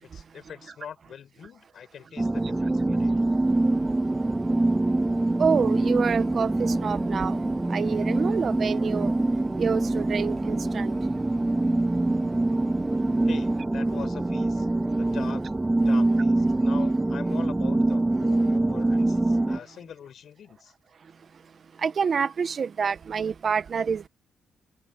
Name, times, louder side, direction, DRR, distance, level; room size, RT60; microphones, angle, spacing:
voice 1, 0.0-3.3 13.3-14.7 15.0-15.4 15.8-20.7, left 8 dB, 60° left, 4.6 m, -43 dB
sound 1, 2.2-19.6, right 2 dB, 15° right, 1.3 m, -24 dB
voice 2, 5.4-7.4 7.7-9.1 9.6-10.9 21.8-24.1, right 6 dB, 45° right, 1.3 m, -27 dB
cardioid pair, 90°, 0 cm